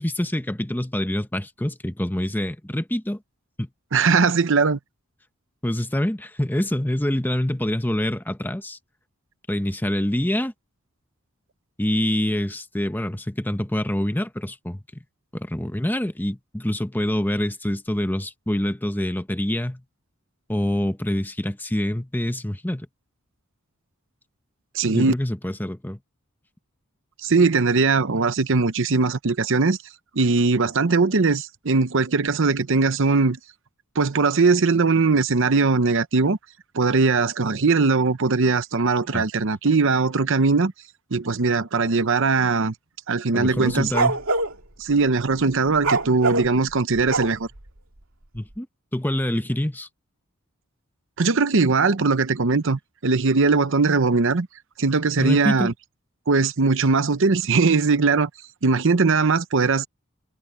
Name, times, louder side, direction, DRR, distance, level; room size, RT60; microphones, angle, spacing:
voice 1, 0.0-3.2 3.6-3.7 5.6-8.8 9.5-10.5 11.8-15.0 15.3-19.8 20.5-22.9 24.9-26.0 39.1-39.3 43.3-44.2 48.3-48.7 48.9-49.9 55.2-55.7, left 1 dB, 10° left, 1.0 m, -26 dB
voice 2, 3.9-4.8 24.7-25.1 27.2-29.8 30.1-33.4 34.0-36.4 36.7-40.7 41.1-42.7 43.1-43.9 44.8-47.5 51.2-54.5 54.8-55.7 56.3-58.3 58.6-59.9, right 4 dB, 65° right, 0.9 m, -20 dB
sound 1, 43.4-44.5 45.8-47.6, right 3 dB, 85° right, 2.4 m, -23 dB
head